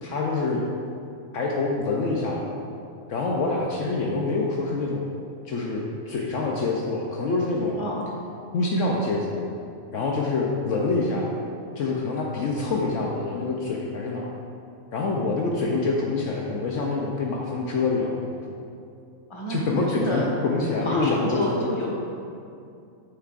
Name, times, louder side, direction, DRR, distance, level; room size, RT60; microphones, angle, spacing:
voice 1, 0.0-0.7 1.3-2.5 3.1-5.1 5.4-7.8 8.5-9.4 9.9-11.3 11.8-14.3 14.9-18.5 19.5-21.6, left 3 dB, 70° left, -2 dB, 1.0 m, -26 dB
voice 2, 19.3-20.3 20.8-21.9, equal, 20° left, -4 dB, 1.3 m, -29 dB
9.1 x 6.6 x 2.5 m, 2.5 s
omnidirectional pair, 1.4 m